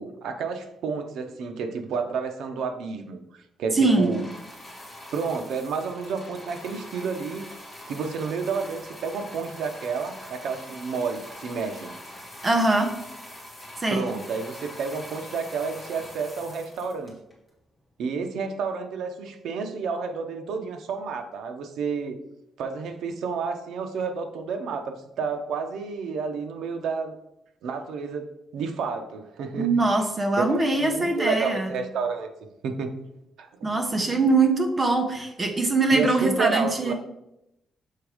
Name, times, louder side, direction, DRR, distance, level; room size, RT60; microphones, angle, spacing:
voice 1, 0.0-4.3 5.1-7.5 7.9-12.0 13.9-17.2 18.0-22.2 22.6-27.2 27.6-29.7 30.4-32.9 33.4-34.1 35.9-36.9, right 5 dB, 85° right, 6 dB, 0.7 m, -30 dB
voice 2, 3.7-4.1 12.4-12.9 13.8-14.0 29.5-31.7 33.6-36.9, right 3 dB, 20° right, 3 dB, 0.8 m, -22 dB
sound 1, 3.8-17.5 18.3-18.4, left 1 dB, 5° left, 1.8 m, -43 dB
6.6 x 3.5 x 4.9 m, 0.86 s
cardioid pair, 170°, 0 cm